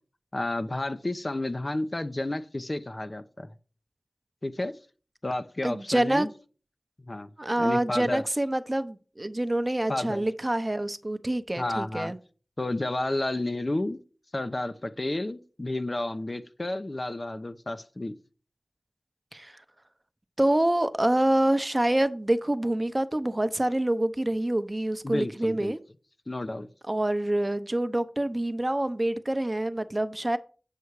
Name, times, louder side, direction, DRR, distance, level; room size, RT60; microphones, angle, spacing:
voice 1, 0.3-3.5 4.4-4.7 5.2-6.3 7.1-7.3 7.6-8.2 9.9-10.3 11.6-12.1 12.6-14.0 14.3-18.1 25.0-25.7 26.3-26.7, left 2 dB, 45° left, 0.7 m, -31 dB
voice 2, 5.6-6.3 7.4-12.2 19.3-19.6 20.4-25.8 26.9-30.4, right 1 dB, 30° right, 0.7 m, -26 dB
8.3 x 5.6 x 4.7 m
wide cardioid pair, 45°, 0 cm